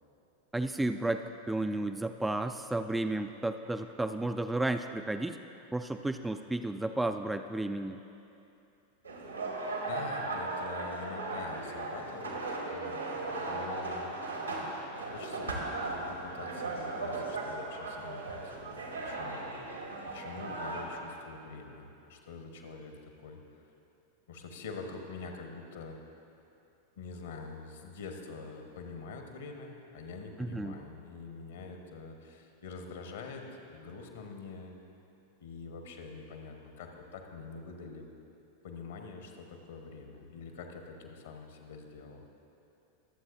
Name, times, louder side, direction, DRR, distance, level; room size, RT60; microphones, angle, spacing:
voice 1, 0.5-5.4 5.7-8.0 30.4-30.8, right 2 dB, 5° right, 7 dB, 0.3 m, -32 dB
sound 1, 9.0-20.8, right 2 dB, 80° right, 1.6 m, -37 dB
voice 2, 9.9-14.4 15.1-19.4 20.1-22.9 23.2-23.4 24.3-26.0 27.0-34.7 35.4-38.1 38.6-42.2, left 4 dB, 60° left, 3 dB, 1.2 m, -45 dB
23.0 x 7.9 x 2.6 m, 2.8 s
figure-of-eight pair, 90°, 0 cm